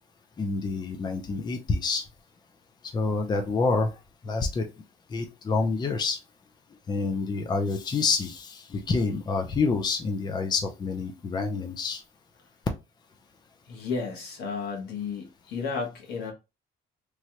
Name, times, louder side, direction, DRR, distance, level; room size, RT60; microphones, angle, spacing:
voice 1, 0.4-2.1 2.8-3.9 4.2-4.7 5.1-6.2 6.9-12.0, left 4 dB, 25° left, 0.5 m, -27 dB
voice 2, 13.7-16.3, left 5 dB, 80° left, 1.2 m, -33 dB
3.1 x 2.3 x 2.8 m
cardioid pair, 110°, 17 cm